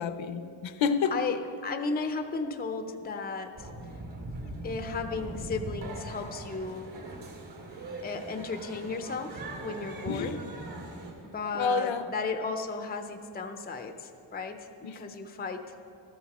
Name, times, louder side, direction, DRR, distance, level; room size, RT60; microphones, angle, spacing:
voice 1, 0.0-1.1 10.0-10.3 11.5-12.1 14.8-15.0, left 6 dB, 65° left, 10 dB, 0.7 m, -29 dB
voice 2, 1.0-3.7 4.6-6.9 8.0-10.4 11.2-15.7, left 4 dB, 20° left, 7 dB, 0.5 m, -35 dB
sound 1, 3.6-11.4, right 1 dB, 60° right, 2.4 m, -40 dB
13.5 x 13.5 x 4.1 m, 2.6 s
wide cardioid pair, 175°, 49 cm